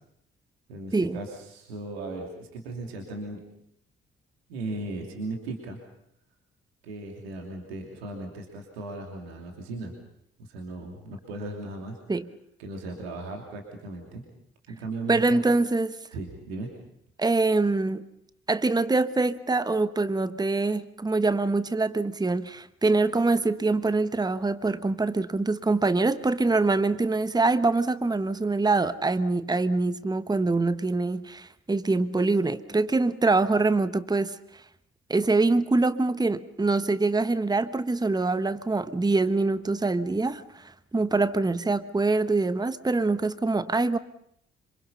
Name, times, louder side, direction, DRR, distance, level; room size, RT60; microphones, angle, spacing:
voice 1, 0.7-3.4 4.5-5.8 6.8-9.9 10.4-12.0 12.6-14.2 14.7-15.4 16.1-16.7, right 2 dB, 75° right, 1 dB, 2.9 m, -37 dB
voice 2, 15.1-16.0 17.2-18.1 18.5-34.4 35.1-44.0, right 3 dB, 15° right, 14 dB, 1.1 m, -24 dB
27.0 x 26.0 x 5.6 m, 0.73 s
figure-of-eight pair, 40°, 31 cm